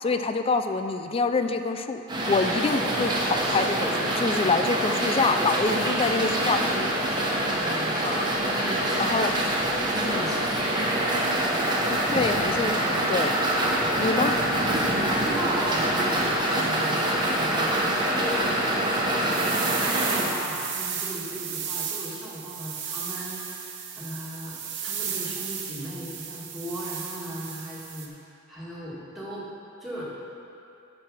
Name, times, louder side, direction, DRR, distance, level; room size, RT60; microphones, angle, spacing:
voice 1, 0.0-6.9 8.0-8.4 9.0-9.4 10.1-10.3 11.9-13.4 14.0-14.4, left 4 dB, 30° left, 8 dB, 0.4 m, -26 dB
sound 1, 2.1-20.2, right 1 dB, 20° right, 1.2 m, -25 dB
voice 2, 7.4-9.3 9.9-10.9 14.1-14.4 14.9-19.7 20.0-24.6 24.8-29.5 29.8-30.2, equal, ahead, -9 dB, 2.0 m, -37 dB
sound 2, 19.3-28.1, right 7 dB, 60° right, 0.9 m, -34 dB
10.5 x 4.8 x 6.3 m, 2.7 s
head